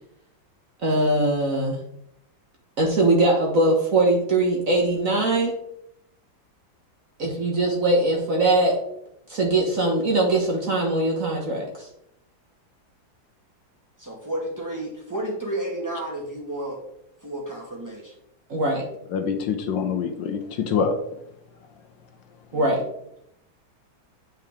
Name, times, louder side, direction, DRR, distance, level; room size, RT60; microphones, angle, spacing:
voice 1, 0.8-1.8 2.8-5.5 7.2-8.8 9.3-11.9 18.5-18.8 22.5-22.8, right 2 dB, 50° right, 0 dB, 1.3 m, -21 dB
voice 2, 14.0-16.8 17.2-18.1 22.5-22.7, right 1 dB, 10° right, -3 dB, 1.6 m, -32 dB
voice 3, 19.1-20.9, left 6 dB, 75° left, 5 dB, 1.4 m, -25 dB
8.8 x 4.5 x 3.6 m, 0.78 s
omnidirectional pair, 2.1 m